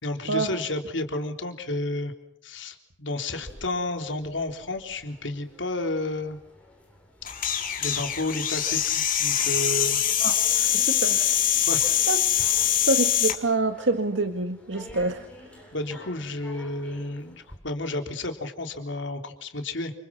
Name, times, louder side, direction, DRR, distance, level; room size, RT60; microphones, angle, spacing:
voice 1, 0.0-2.1 2.4-6.4 7.8-10.0 11.6-11.9 15.7-19.9, left 2 dB, 70° left, 5 dB, 3.7 m, -31 dB
sound 1, 3.3-17.6, equal, 5° left, 7.9 m, -50 dB
sound 2, 7.2-13.4, left 10 dB, 45° left, 3.8 m, -23 dB
voice 2, 10.6-11.3 12.1-12.2 12.5-15.3, right 3 dB, 70° right, 6 dB, 2.0 m, -26 dB
29.5 x 28.5 x 6.1 m, 0.68 s
head